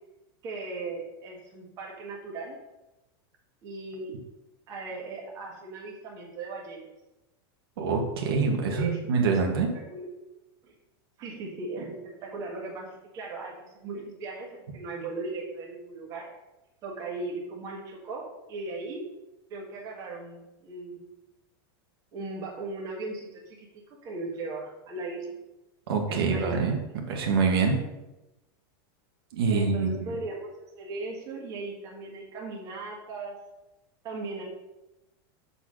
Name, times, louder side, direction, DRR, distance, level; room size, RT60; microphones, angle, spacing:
voice 1, 0.4-2.6 3.6-4.2 4.7-6.9 8.6-9.0 9.7-10.1 10.6-10.7 11.2-16.4 16.8-19.1 19.5-21.0 22.1-25.4 26.1-26.7 29.5-30.5 30.7-33.4 34.0-34.4, right 3 dB, 25° right, -2 dB, 1.7 m, -38 dB
voice 2, 7.8-9.7 25.9-26.8 27.1-27.8 29.3-30.1, right 5 dB, 70° right, 1 dB, 1.5 m, -25 dB
6.7 x 4.2 x 6.4 m, 0.98 s
supercardioid pair, 175°, 13 cm